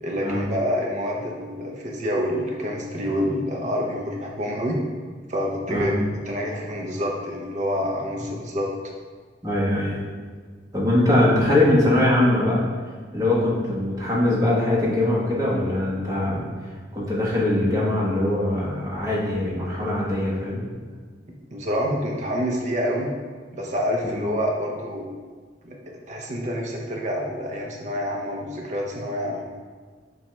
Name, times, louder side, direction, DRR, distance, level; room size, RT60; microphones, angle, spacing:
voice 1, 0.0-4.8 5.3-5.9 6.3-8.7 21.5-23.1 23.5-25.1 25.6-29.4, equal, 45° right, -1 dB, 0.6 m, -27 dB
voice 2, 9.4-10.0 10.7-12.6 13.1-16.4 16.9-20.6 24.0-24.2, left 1 dB, 20° right, -6 dB, 1.1 m, -22 dB
7.0 x 2.4 x 3.1 m, 1.5 s
head